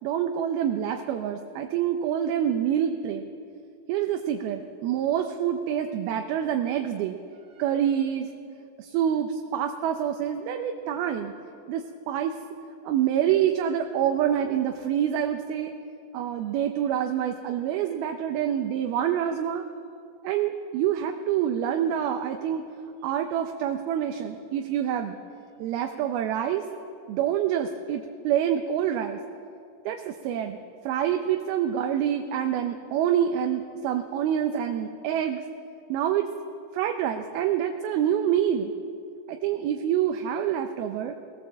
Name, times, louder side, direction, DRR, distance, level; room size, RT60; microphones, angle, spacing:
voice 1, 0.0-3.3 3.9-7.2 7.6-8.3 8.8-11.3 11.7-12.4 12.8-15.7 16.1-19.6 20.2-22.7 23.0-25.2 25.6-26.6 27.1-29.2 29.9-35.4 35.9-36.3 36.7-38.7 39.3-41.2, right 9 dB, 80° right, 5 dB, 2.6 m, -26 dB
19.5 x 18.5 x 7.5 m, 2.5 s
omnidirectional pair, 4.6 m